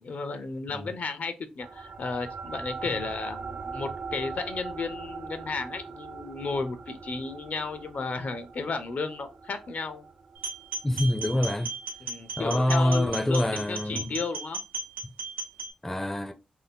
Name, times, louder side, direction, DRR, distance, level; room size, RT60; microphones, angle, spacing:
voice 1, 0.0-10.0 12.0-14.6, left 4 dB, 65° left, 0.5 m, -33 dB
sound 1, 1.6-12.4, right 5 dB, 50° right, 0.3 m, -41 dB
sound 2, 10.3-15.7, right 3 dB, 85° right, 0.8 m, -36 dB
voice 2, 10.8-11.7 12.4-14.1 15.0-15.1 15.8-16.3, left 1 dB, 10° left, 0.5 m, -26 dB
2.6 x 2.1 x 3.4 m
cardioid pair, 55°, 3 cm